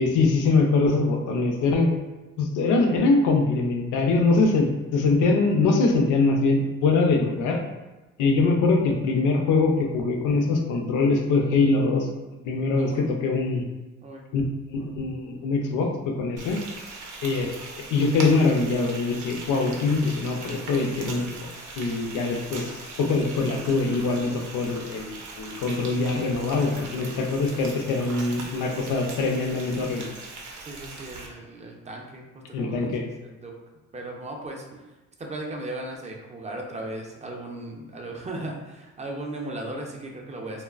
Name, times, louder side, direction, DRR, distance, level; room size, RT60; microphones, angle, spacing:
voice 1, 0.0-1.9 2.4-7.6 8.2-12.1 12.4-13.6 14.3-14.4 14.7-16.6 17.2-17.5 17.9-21.3 21.8-30.1 32.5-33.0, left 3 dB, 85° left, 2 dB, 0.5 m, -23 dB
voice 2, 12.8-13.1 14.0-14.2 14.8-14.9 30.6-33.5 33.9-34.8 35.2-40.6, right 2 dB, 25° right, 0 dB, 0.5 m, -37 dB
Frying (food), 16.4-31.3, right 3 dB, 85° right, 0.6 m, -40 dB
3.0 x 2.0 x 2.4 m, 1.1 s
cardioid pair, 90°, 30 cm